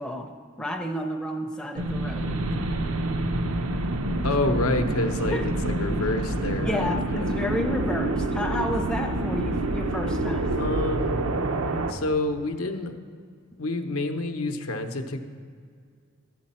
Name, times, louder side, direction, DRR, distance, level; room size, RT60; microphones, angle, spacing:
voice 1, 0.0-2.5 5.3-5.4 5.9-6.0 6.6-10.6, left 1 dB, 5° left, 2 dB, 0.5 m, -31 dB
sound 1, 1.8-11.9, right 2 dB, 75° right, 0.6 m, -27 dB
voice 2, 4.2-7.4 10.6-11.2 11.9-12.9 13.6-15.2, left 2 dB, 80° left, 5 dB, 0.7 m, -28 dB
11.0 x 7.8 x 4.2 m, 2.1 s
head